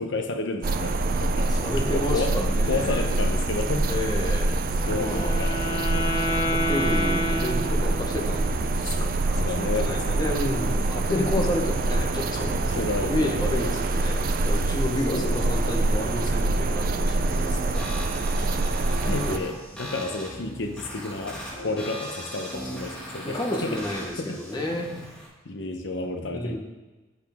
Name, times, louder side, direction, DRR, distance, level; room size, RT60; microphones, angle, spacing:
voice 1, 0.0-1.5 1.8-2.3 2.7-3.9 4.8-6.1 9.4-10.0 11.1-11.5 12.7-13.3 13.6-13.8 15.1-15.6 19.0-23.8 24.2-24.4 25.4-26.6, left 3 dB, 75° left, 4 dB, 0.8 m, -31 dB
sound 1, 0.6-19.4, right 2 dB, 50° right, 0.4 m, -25 dB
voice 2, 1.5-3.2 3.9-4.6 4.9-5.4 6.5-17.9 18.9-19.5 23.2-24.9 26.3-26.6, left 1 dB, 20° left, 0 dB, 1.1 m, -31 dB
Wind instrument woodwind instrument, 4.7-8.3, equal, 55° left, 1.7 m, -29 dB
sound 2, 17.3-25.3, equal, 5° left, 1.7 m, -38 dB
8.2 x 8.0 x 3.5 m, 1.2 s
head